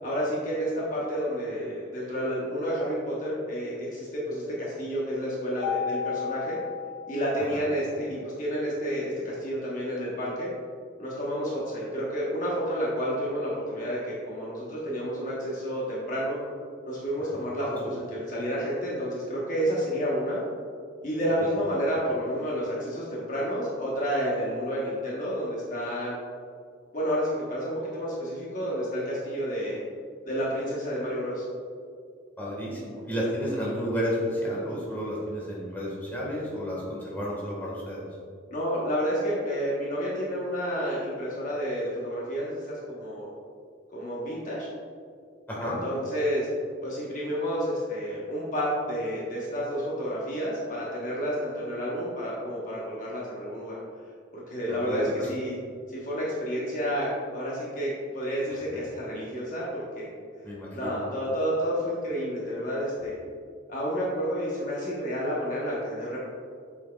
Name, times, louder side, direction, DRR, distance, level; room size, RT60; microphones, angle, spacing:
voice 1, 0.0-6.6 7.1-10.5 11.0-16.4 16.9-20.4 21.0-26.1 26.9-29.8 30.3-31.4 38.5-43.3 43.9-44.7 45.6-46.5 46.8-53.8 54.3-55.6 55.9-60.1 60.7-63.1 63.7-66.2, equal, 40° left, -6 dB, 1.1 m, -30 dB
Mallet percussion, 5.6-7.9, left 7 dB, 65° left, 0.8 m, -33 dB
voice 2, 17.3-17.7 32.4-38.0 45.5-45.8 54.7-55.3 58.7-58.8 60.4-61.0, equal, 10° left, -6 dB, 1.5 m, -32 dB
7.6 x 6.2 x 2.3 m, 2.2 s
head